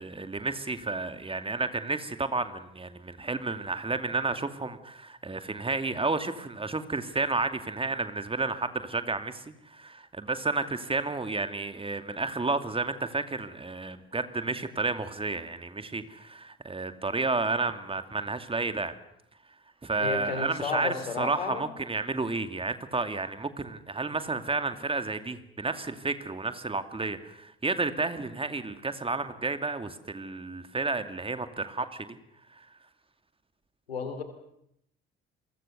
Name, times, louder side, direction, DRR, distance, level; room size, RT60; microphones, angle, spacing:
voice 1, 0.0-18.9 19.8-32.2 32.5-32.7, right 3 dB, 20° right, 9 dB, 2.4 m, -31 dB
voice 2, 20.0-21.7 33.9-34.2, left 5 dB, 80° left, 9 dB, 2.9 m, -32 dB
29.0 x 23.0 x 6.8 m, 0.77 s
figure-of-eight pair, 50°, 30 cm